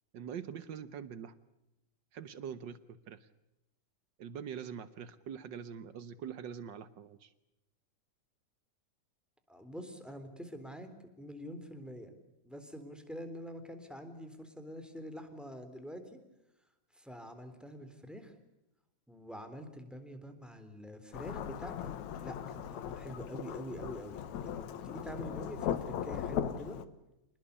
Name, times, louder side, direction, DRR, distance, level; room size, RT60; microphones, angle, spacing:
voice 1, 0.1-1.3 2.1-3.3 4.2-7.3, right 8 dB, 85° right, 13 dB, 1.0 m, -44 dB
voice 2, 9.5-10.9 11.2-12.1 12.4-16.2 16.9-18.3 19.1-26.8, equal, ahead, 8 dB, 3.3 m, -46 dB
Thunderstorm / Rain, 21.1-26.8, left 9 dB, 70° left, 2.5 m, -38 dB
28.0 x 20.0 x 8.4 m, 0.93 s
omnidirectional pair, 3.5 m